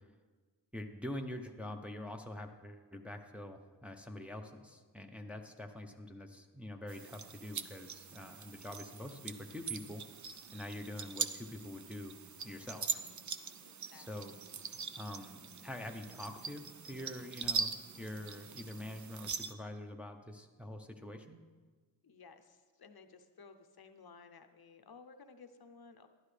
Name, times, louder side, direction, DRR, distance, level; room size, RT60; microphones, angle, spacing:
voice 1, 0.7-10.0 10.5-12.2 12.4-13.0 13.9-14.3 15.0-21.4, left 1 dB, 5° right, 3 dB, 0.6 m, -45 dB
voice 2, 5.1-5.5 13.6-14.3 22.0-26.1, left 5 dB, 55° left, 9 dB, 0.6 m, -57 dB
sound 1, 6.9-19.5, right 6 dB, 45° right, 0.5 m, -42 dB
12.0 x 11.5 x 3.3 m, 1.4 s
wide cardioid pair, 90°, 44 cm